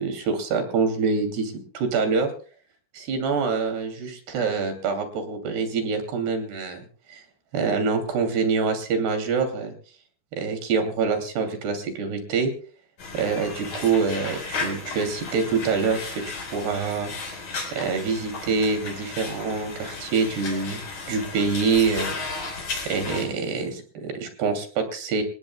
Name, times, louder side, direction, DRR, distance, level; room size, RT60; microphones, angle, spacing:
voice 1, 0.0-2.3 2.9-6.8 7.1-7.2 7.5-9.7 10.3-12.5 13.1-16.0 16.5-17.4 17.7-20.8 21.1-22.2 22.9-25.2, right 5 dB, 70° right, 7 dB, 4.7 m, -25 dB
sound 1, 13.0-23.3, left 4 dB, 50° left, 5.8 m, -34 dB
27.5 x 17.5 x 2.2 m, 0.41 s
omnidirectional pair, 5.0 m